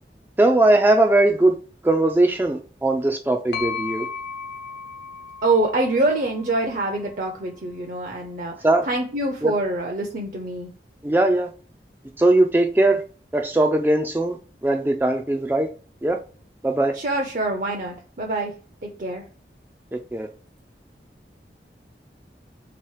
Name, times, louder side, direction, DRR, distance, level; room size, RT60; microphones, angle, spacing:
voice 1, 0.4-1.6 1.8-4.1 8.6-8.9 9.4-9.5 11.0-11.5 12.2-13.0 13.3-15.7 16.0-16.2 16.6-17.0 20.1-20.3, right 2 dB, 10° right, 0.3 m, -19 dB
sound 1, 3.5-7.3, left 6 dB, 90° left, 1.0 m, -35 dB
voice 2, 5.4-8.5 8.9-10.7 16.9-18.5 18.8-19.2, right 2 dB, 50° right, 0.6 m, -25 dB
3.8 x 3.0 x 4.7 m
head